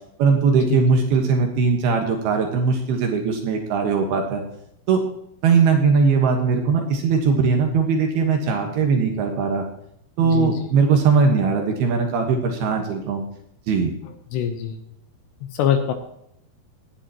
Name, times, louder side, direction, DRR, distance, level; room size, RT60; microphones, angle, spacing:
voice 1, 0.2-4.4 4.9-5.0 5.4-9.6 10.2-13.2 13.7-13.9, right 5 dB, 65° right, 3 dB, 2.9 m, -20 dB
voice 2, 14.3-14.8 15.6-15.9, left 9 dB, 75° left, 7 dB, 2.9 m, -22 dB
18.5 x 10.0 x 3.0 m, 0.75 s
omnidirectional pair, 5.5 m